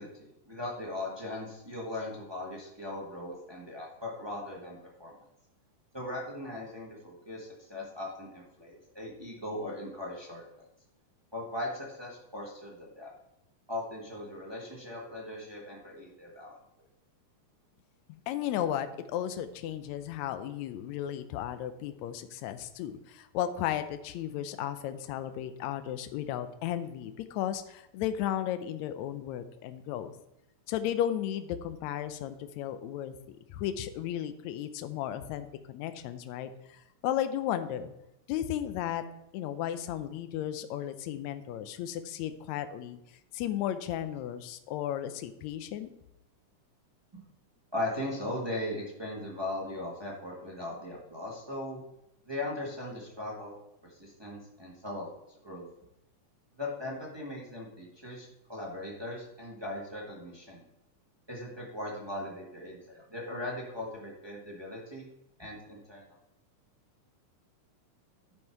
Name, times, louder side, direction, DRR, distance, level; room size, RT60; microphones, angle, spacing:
voice 1, 0.0-5.2 5.9-10.6 11.3-13.1 13.7-16.6 47.1-47.2 47.7-51.8 52.3-53.6 54.0-55.1 55.4-55.6 56.6-60.6 61.3-65.1 65.4-66.0, left 1 dB, 25° right, -3 dB, 0.6 m, -39 dB
voice 2, 18.3-30.1 30.7-37.9 38.3-39.0 39.3-43.0 43.3-45.9, left 11 dB, 80° left, 11 dB, 1.6 m, -34 dB
10.5 x 5.6 x 4.6 m, 0.86 s
omnidirectional pair, 3.8 m